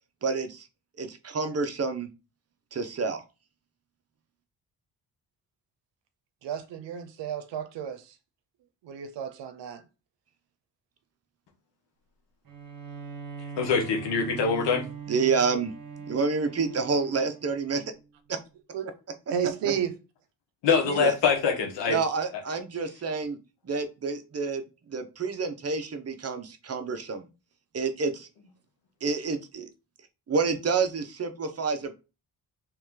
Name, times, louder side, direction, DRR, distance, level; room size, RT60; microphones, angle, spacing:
voice 1, 0.2-0.7 1.0-2.1 2.7-3.2 15.1-15.7 16.1-17.8 18.3-18.4 21.0-21.1 21.9-23.4 23.6-27.3 27.7-28.3 29.0-29.7 30.3-31.9, right 4 dB, 35° right, 0.7 m, -28 dB
voice 2, 6.4-8.2 8.8-9.8 18.7-18.9 19.3-19.9 20.8-21.0, right 8 dB, 85° right, 0.7 m, -32 dB
Bowed string instrument, 12.4-17.9, right 6 dB, 55° right, 1.1 m, -41 dB
voice 3, 13.6-14.9 20.6-22.0, left 5 dB, 90° left, 1.2 m, -24 dB
3.1 x 3.0 x 3.7 m
cardioid pair, 75°, 42 cm